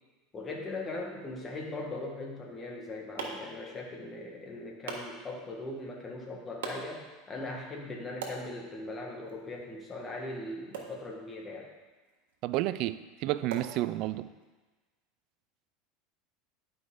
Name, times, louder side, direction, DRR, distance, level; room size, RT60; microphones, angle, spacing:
voice 1, 0.3-11.7, left 2 dB, 20° left, 0 dB, 1.6 m, -40 dB
sound 1, 2.5-14.4, right 4 dB, 85° right, 1.3 m, -47 dB
voice 2, 12.4-14.3, right 15 dB, 55° right, 14 dB, 0.3 m, -31 dB
11.0 x 5.1 x 3.8 m, 1.3 s
supercardioid pair, 125°, 0 cm